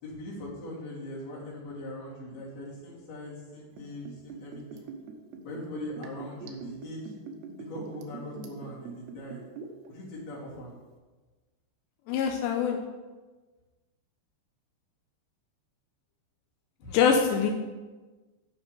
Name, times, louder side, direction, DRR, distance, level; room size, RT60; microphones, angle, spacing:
voice 1, 0.0-4.9 5.4-7.1 7.6-9.4 9.9-10.7 16.8-17.1, left 1 dB, 55° left, -5 dB, 4.3 m, -41 dB
Liquid, 3.7-9.9 10.2-10.3, right 5 dB, 75° right, 3.0 m, -43 dB
voice 2, 12.1-12.8 16.9-17.5, left 6 dB, 85° left, 3 dB, 2.7 m, -24 dB
10.0 x 5.5 x 6.9 m, 1.3 s
omnidirectional pair, 5.4 m